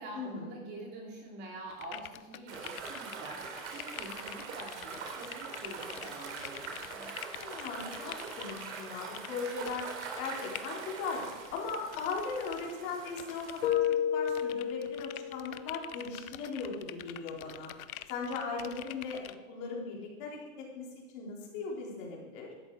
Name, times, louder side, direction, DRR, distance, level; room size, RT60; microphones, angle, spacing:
voice 1, 0.0-3.4 3.7-7.2, right 2 dB, 25° right, -1 dB, 2.8 m, -46 dB
sound 1, 1.7-8.8 9.1-9.3 9.7-10.7 11.2-12.8 13.1-13.9 14.2-19.3, left 12 dB, 85° left, 0.9 m, -46 dB
sound 2, 2.5-13.7, right 5 dB, 55° right, 3.6 m, -43 dB
voice 2, 7.4-9.9 10.2-11.2 11.5-13.8 14.1-17.7 18.1-19.2 19.5-20.9 21.1-22.5, left 4 dB, 35° left, -1 dB, 3.8 m, -38 dB
Keyboard (musical), 13.6-15.6, left 10 dB, 65° left, 1.3 m, -31 dB
17.5 x 13.0 x 4.7 m, 1.2 s
supercardioid pair, 165°, 41 cm